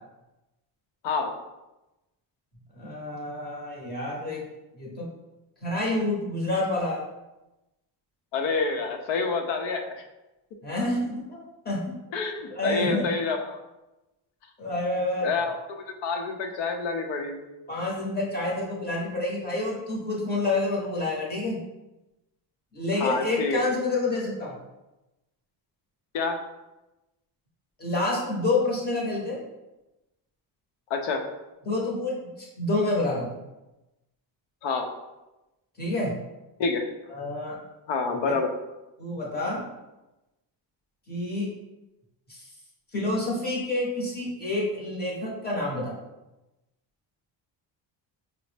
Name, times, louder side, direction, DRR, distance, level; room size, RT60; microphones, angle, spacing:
voice 1, 1.0-1.3 8.3-10.0 12.1-13.6 15.2-17.4 23.0-23.6 26.1-26.4 30.9-31.2 34.6-34.9 36.6-36.8 37.9-38.5, left 4 dB, 80° left, 4 dB, 0.7 m, -28 dB
voice 2, 2.7-4.4 4.7-5.1 5.6-7.0 10.6-12.0 12.5-13.1 14.6-15.3 17.7-21.6 22.7-24.6 27.8-29.4 31.6-33.4 35.8-36.2 37.1-37.6 38.3-38.4 39.0-39.7 41.1-41.5 42.3-42.5 42.9-45.9, left 2 dB, 25° left, -4 dB, 0.8 m, -28 dB
5.1 x 2.0 x 3.2 m, 1.0 s
cardioid pair, 175°, 43 cm